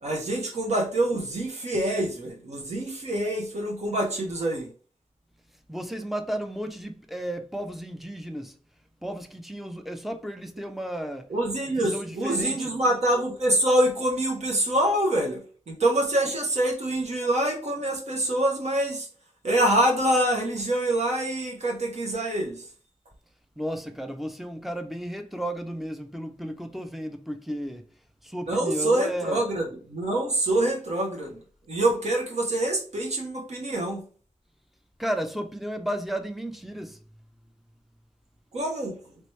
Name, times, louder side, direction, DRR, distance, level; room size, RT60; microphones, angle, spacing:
voice 1, 0.0-4.7 11.3-15.4 15.7-19.1 19.4-22.7 28.5-31.4 31.7-34.0 38.5-39.0, right 1 dB, 60° right, 1.0 m, -25 dB
voice 2, 5.7-8.6 9.0-11.3 11.8-12.7 23.6-27.8 28.2-29.4 35.0-37.0, equal, ahead, 0.5 m, -33 dB
3.3 x 3.0 x 3.1 m
wide cardioid pair, 90°, 13 cm